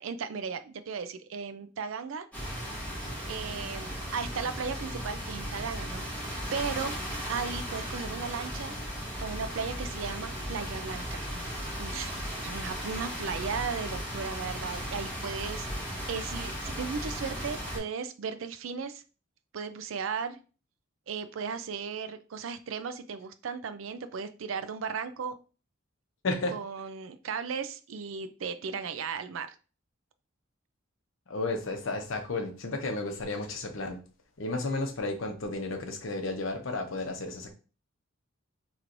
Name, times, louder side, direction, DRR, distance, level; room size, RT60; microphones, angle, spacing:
voice 1, 0.0-2.3 3.3-6.1 6.5-6.9 7.3-8.8 9.2-11.5 11.8-12.1 12.4-19.0 19.5-20.4 21.1-25.4 26.5-29.6, right 5 dB, 80° right, 11 dB, 0.4 m, -36 dB
sound 1, 2.3-17.8, equal, 10° left, 2.2 m, -36 dB
voice 2, 26.2-26.5 31.3-34.0 34.4-37.5, left 2 dB, 75° left, 5 dB, 0.8 m, -33 dB
4.4 x 3.1 x 2.6 m, 0.35 s
head